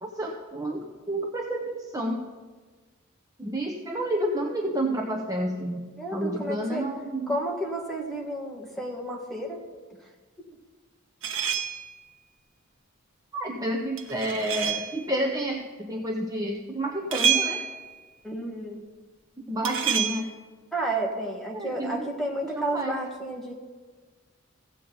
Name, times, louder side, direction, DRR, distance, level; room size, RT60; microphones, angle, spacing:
voice 1, 0.0-2.2 3.4-7.3 13.3-17.6 19.5-20.3 21.5-22.0 22.6-23.0, right 1 dB, 15° right, 1 dB, 0.7 m, -30 dB
voice 2, 6.0-6.9 7.3-9.6 10.4-10.5 18.2-18.8 20.7-23.5, right 1 dB, ahead, -1 dB, 1.6 m, -31 dB
sound 1, 11.2-12.0 14.0-15.0 17.1-18.0 19.6-20.2, right 8 dB, 70° right, 1.0 m, -27 dB
15.0 x 8.3 x 3.9 m, 1.4 s
head